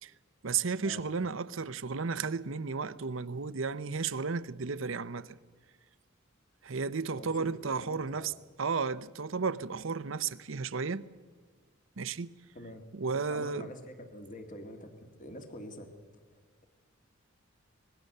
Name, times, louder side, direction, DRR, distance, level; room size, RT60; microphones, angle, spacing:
voice 1, 0.4-5.4 6.6-8.3 8.6-11.0 12.0-12.3 12.9-13.7, right 5 dB, 65° right, 0.7 m, -33 dB
voice 2, 7.2-7.5 7.7-8.4 12.6-12.9 13.3-15.9 16.3-16.6, left 1 dB, 40° left, 2.0 m, -46 dB
25.0 x 20.0 x 6.7 m
head